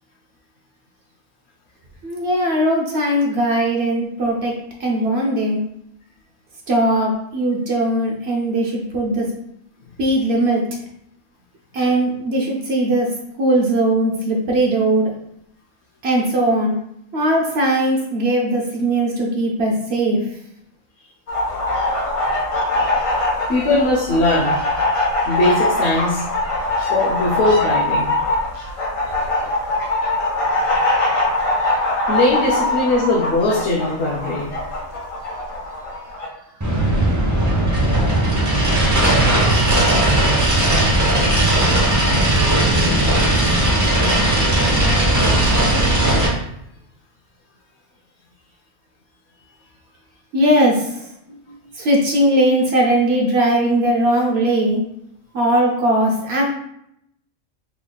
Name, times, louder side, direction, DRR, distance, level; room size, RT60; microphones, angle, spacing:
voice 1, 2.0-4.5 4.8-5.6 6.7-9.3 10.0-10.6 11.7-13.1 13.4-15.1 16.0-16.7 17.1-20.2 50.3-51.1 51.7-54.8 55.3-56.5, right 1 dB, 60° right, -1 dB, 0.7 m, -19 dB
sound 1, 21.3-36.3, left 2 dB, 80° left, 1.3 m, -22 dB
voice 2, 23.5-24.6 25.3-26.3 26.9-28.1 29.4-29.6 32.1-34.5 43.1-43.2 51.3-51.6, left 2 dB, 60° left, 0 dB, 0.8 m, -20 dB
sound 2, 36.6-46.3, right 1 dB, 25° right, 0.4 m, -17 dB
3.3 x 2.3 x 3.7 m, 0.76 s
omnidirectional pair, 1.4 m